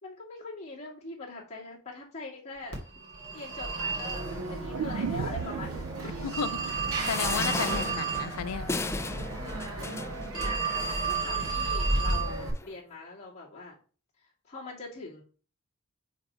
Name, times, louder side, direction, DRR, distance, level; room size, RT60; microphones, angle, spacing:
voice 1, 0.0-2.8 3.3-5.9 10.3-13.8 14.2-15.2, left 3 dB, 30° left, 2.4 m, -42 dB
Telephone, 2.7-12.5, right 3 dB, 80° right, 2.1 m, -32 dB
sound 1, 4.7-8.8 9.1-9.2, right 6 dB, 65° right, 0.4 m, -38 dB
voice 2, 6.2-6.6 7.0-8.7, left 7 dB, 80° left, 0.5 m, -33 dB
sound 2, 7.0-11.5 12.2-12.3 12.6-12.7, left 3 dB, 10° left, 0.3 m, -36 dB
5.3 x 3.8 x 5.5 m
head